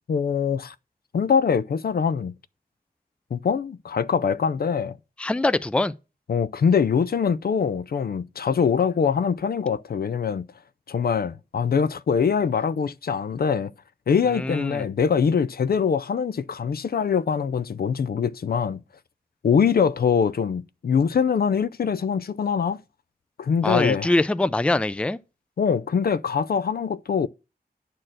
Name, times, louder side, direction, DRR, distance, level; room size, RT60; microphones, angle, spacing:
voice 1, 0.1-0.7 1.1-2.3 3.3-5.0 6.3-10.5 10.9-13.7 14.1-18.8 19.4-22.8 23.4-24.1 25.6-27.3, left 6 dB, 70° left, 0.4 m, -23 dB
voice 2, 5.2-5.9 14.3-14.9 23.6-25.2, left 2 dB, 5° left, 0.4 m, -23 dB
10.0 x 4.4 x 7.6 m
wide cardioid pair, 100°, 17 cm